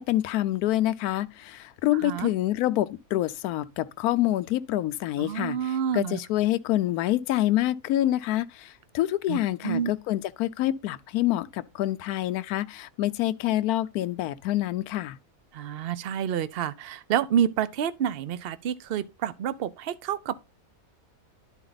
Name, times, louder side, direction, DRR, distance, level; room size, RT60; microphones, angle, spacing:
voice 1, 0.0-8.7 8.9-15.2, left 14 dB, 75° left, 1.1 m, -27 dB
voice 2, 2.0-2.3 5.2-6.2 9.3-9.9 15.5-20.4, right 9 dB, 60° right, 0.6 m, -28 dB
11.0 x 4.4 x 3.9 m
omnidirectional pair, 1.7 m